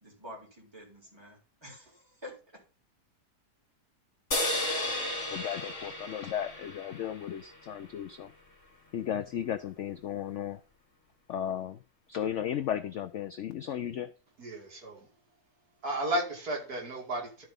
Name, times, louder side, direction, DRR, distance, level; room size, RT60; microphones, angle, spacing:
voice 1, 0.0-2.6, left 1 dB, 15° right, 3.6 m, -48 dB
sound 1, 4.3-7.8, left 1 dB, 45° left, 2.9 m, -34 dB
voice 2, 5.3-8.3 8.9-10.6 11.3-11.8 12.1-14.1, left 10 dB, 65° left, 0.7 m, -35 dB
voice 3, 14.4-15.1 15.8-17.5, right 1 dB, 65° right, 2.8 m, -33 dB
12.5 x 4.6 x 5.3 m
omnidirectional pair, 1.7 m